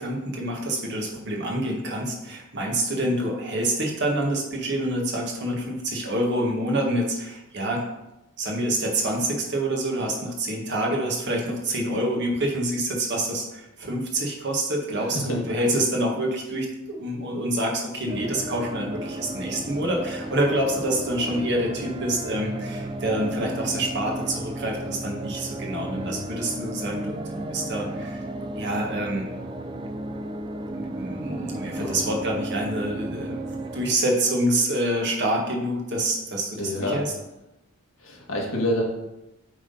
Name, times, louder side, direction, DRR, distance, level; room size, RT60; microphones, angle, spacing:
voice 1, 0.0-7.8 8.4-28.2 28.5-29.2 30.7-33.4 33.7-37.1, right 1 dB, 55° right, 0 dB, 1.5 m, -27 dB
voice 2, 15.0-15.4 25.9-26.3 31.7-32.0 36.6-37.0 38.0-38.8, left 1 dB, 65° left, -1 dB, 1.7 m, -28 dB
sound 1, 18.1-34.0, right 1 dB, 25° right, 0.5 m, -34 dB
7.5 x 3.7 x 5.3 m, 0.94 s
head